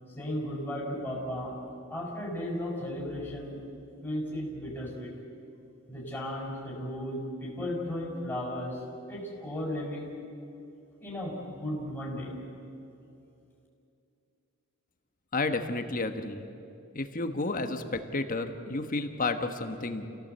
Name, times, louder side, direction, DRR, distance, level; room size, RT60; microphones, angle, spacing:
voice 1, 0.2-1.6 1.9-3.7 4.0-5.1 5.9-8.8 9.1-10.2 11.0-12.4, left 1 dB, 10° left, -3 dB, 5.7 m, -35 dB
voice 2, 15.3-16.5 16.9-20.1, left 3 dB, 40° left, 7 dB, 1.3 m, -31 dB
29.0 x 17.0 x 8.1 m, 2.7 s
head